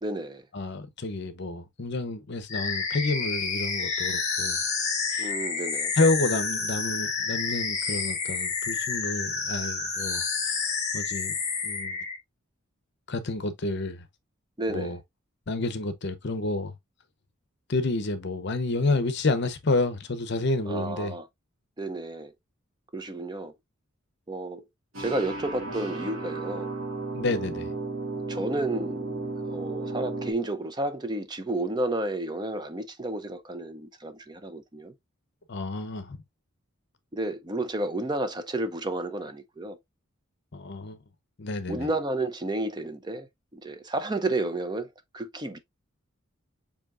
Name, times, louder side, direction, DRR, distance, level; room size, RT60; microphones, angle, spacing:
voice 1, 0.0-0.4 5.2-5.9 14.6-15.0 20.7-21.3 21.8-22.3 22.9-23.5 24.3-24.6 25.0-26.7 28.3-34.9 37.1-39.8 41.7-43.3 43.5-44.9 45.1-45.6, right 2 dB, 20° right, 0.5 m, -31 dB
voice 2, 0.5-4.6 5.1-5.3 5.9-10.2 10.9-11.3 11.6-12.0 13.1-14.0 14.7-15.0 15.5-16.7 17.7-21.1 27.1-27.7 35.5-36.2 40.5-41.0 41.4-41.9, left 2 dB, 55° left, 0.7 m, -29 dB
sound 1, 2.5-12.2, left 5 dB, 35° left, 1.5 m, -29 dB
sound 2, 24.9-30.3, right 3 dB, 70° right, 1.5 m, -34 dB
7.1 x 2.8 x 2.4 m
head